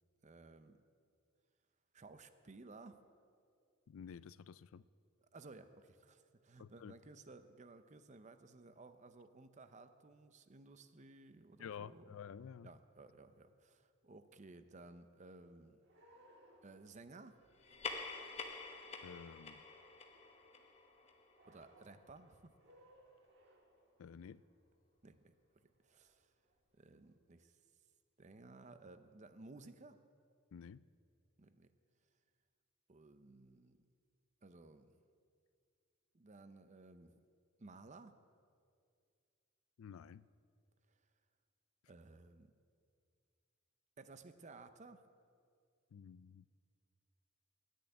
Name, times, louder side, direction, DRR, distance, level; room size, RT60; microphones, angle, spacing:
voice 1, 0.2-0.8 1.9-3.0 5.2-12.2 12.6-15.8 16.6-17.4 21.4-22.5 25.0-25.3 25.8-26.3 26.8-27.6 28.2-30.0 31.4-31.7 32.9-33.8 34.4-35.0 36.1-37.2 37.6-38.1 41.9-42.5 44.0-45.0, right 3 dB, 35° right, 10 dB, 0.6 m, -57 dB
voice 2, 3.9-4.8 6.6-6.9 11.6-12.7 19.0-19.6 24.0-24.4 30.5-30.8 39.8-40.2 45.9-46.4, left 7 dB, 75° left, 19 dB, 0.4 m, -51 dB
sound 1, 15.8-27.1, right 1 dB, 55° right, 1.6 m, -69 dB
sound 2, 17.6-22.5, left 4 dB, 30° left, 1.1 m, -48 dB
10.5 x 10.5 x 9.1 m, 2.3 s
head